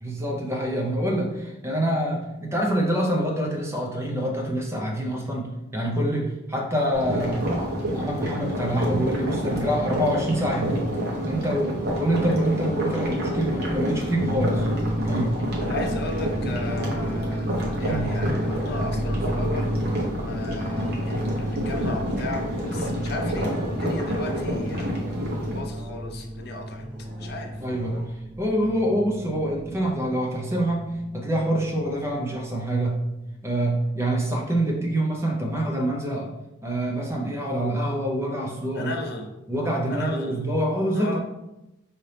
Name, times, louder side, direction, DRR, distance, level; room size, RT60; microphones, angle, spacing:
voice 1, 0.0-7.6 7.9-10.8 11.3-14.7 15.1-15.3 17.8-18.1 27.6-28.0 28.4-33.0 33.4-36.3 36.6-38.9 39.5-41.2, right 1 dB, 15° right, -1 dB, 0.6 m, -26 dB
sound 1, 6.9-25.6, equal, 50° right, 1.0 m, -28 dB
sound 2, 9.3-28.1, equal, 5° left, 1.0 m, -42 dB
sound 3, 14.3-33.8, equal, 65° right, 1.3 m, -33 dB
voice 2, 15.6-26.8 27.2-27.5 38.7-39.3 39.9-40.5 40.9-41.2, left 2 dB, 50° left, 3 dB, 0.5 m, -36 dB
5.1 x 2.8 x 3.3 m, 0.96 s
head